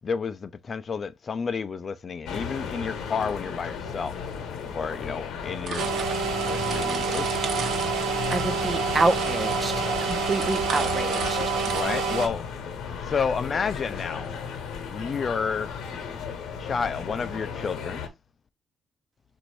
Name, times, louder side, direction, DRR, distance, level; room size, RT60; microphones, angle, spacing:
voice 1, 0.0-4.1 4.7-5.9 6.3-7.3 11.7-12.4 13.1-14.3 14.9-15.7 16.6-18.0, left 5 dB, 40° left, 0.4 m, -30 dB
sound 1, 2.2-18.1, left 6 dB, 80° left, 0.9 m, -35 dB
sound 2, 5.7-11.8, right 6 dB, 65° right, 1.1 m, -37 dB
sound 3, 5.8-12.3, right 5 dB, 85° right, 1.3 m, -28 dB
voice 2, 8.3-9.7 10.1-11.4, right 3 dB, 30° right, 0.8 m, -27 dB
4.0 x 2.6 x 4.6 m
cardioid pair, 90°, 0 cm